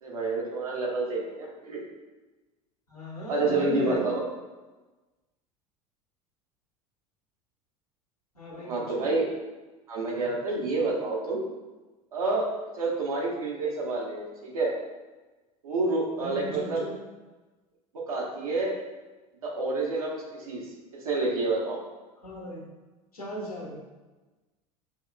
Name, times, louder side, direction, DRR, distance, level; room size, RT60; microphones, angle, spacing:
voice 1, 0.0-1.8 3.3-4.3 8.6-9.3 9.9-11.4 12.1-14.7 15.6-16.8 17.9-18.7 19.4-20.6 20.9-21.8, right 3 dB, 70° right, -3 dB, 1.0 m, -28 dB
voice 2, 2.9-4.0 8.3-9.2 16.2-17.0 22.2-22.7 23.1-23.8, left 1 dB, 85° left, -4 dB, 1.1 m, -36 dB
6.1 x 3.1 x 2.2 m, 1.2 s
figure-of-eight pair, 70°, 19 cm